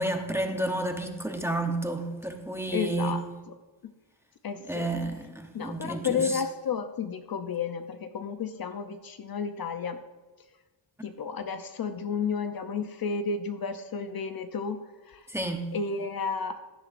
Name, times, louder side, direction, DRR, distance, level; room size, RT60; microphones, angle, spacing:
voice 1, 0.0-3.2 4.6-6.4 15.3-15.6, right 1 dB, 5° right, 0.8 m, -31 dB
voice 2, 2.7-3.2 4.4-4.9 5.5-10.0 11.0-14.8 15.1-15.2 15.7-16.6, left 5 dB, 50° left, 0.7 m, -32 dB
16.0 x 11.0 x 2.5 m
wide cardioid pair, 165°, 45 cm